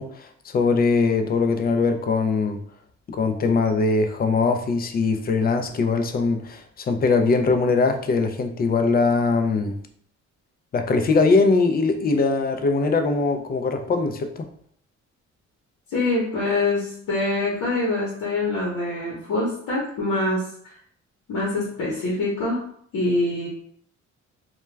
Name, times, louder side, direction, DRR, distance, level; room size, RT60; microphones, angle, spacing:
voice 1, 0.0-2.6 3.1-9.7 10.7-14.4, left 4 dB, 30° left, 6 dB, 0.4 m, -21 dB
voice 2, 15.9-20.4 21.3-22.6 22.9-23.5, left 2 dB, 75° left, -5 dB, 0.9 m, -24 dB
2.2 x 2.2 x 3.2 m, 0.63 s
cardioid pair, 90°, 30 cm